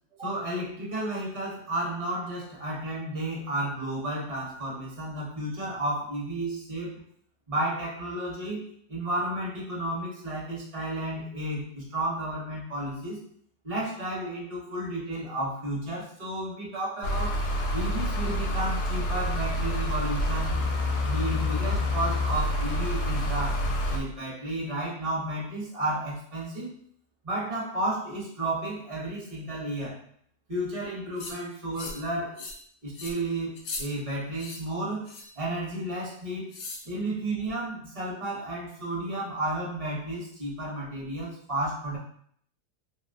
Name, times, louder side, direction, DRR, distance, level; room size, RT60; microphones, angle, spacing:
voice 1, 0.2-7.0 7.5-13.2 13.6-17.4 17.7-20.6 21.0-23.6 23.9-26.7 27.2-30.0 30.5-32.5 32.8-35.1 35.4-36.5 36.8-42.0, right 1 dB, 30° right, -6 dB, 0.6 m, -32 dB
sound 1, 17.0-24.0, left 1 dB, 75° left, 1.2 m, -27 dB
sound 2, 31.2-31.4 31.7-32.1 32.4-32.6 32.9-33.1 33.6-33.8 34.3-34.6 35.1-35.4 36.5-36.8, left 3 dB, 60° left, 0.8 m, -38 dB
3.0 x 2.8 x 2.5 m, 0.63 s
omnidirectional pair, 1.7 m